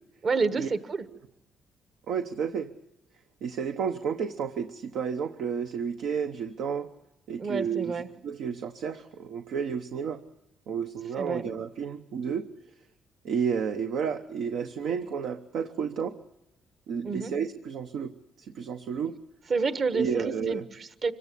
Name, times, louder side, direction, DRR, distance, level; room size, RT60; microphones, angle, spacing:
voice 1, 0.2-1.0 7.4-8.1 11.1-11.4 17.0-17.3 19.5-21.1, right 4 dB, 50° right, 11 dB, 1.3 m, -29 dB
voice 2, 2.1-2.7 3.4-6.9 7.3-10.2 10.7-12.5 13.2-16.2 16.9-18.1 18.4-19.1 19.9-20.6, right 6 dB, 80° right, 7 dB, 0.9 m, -31 dB
25.5 x 16.5 x 8.3 m, 0.89 s
cardioid pair, 90°, 0 cm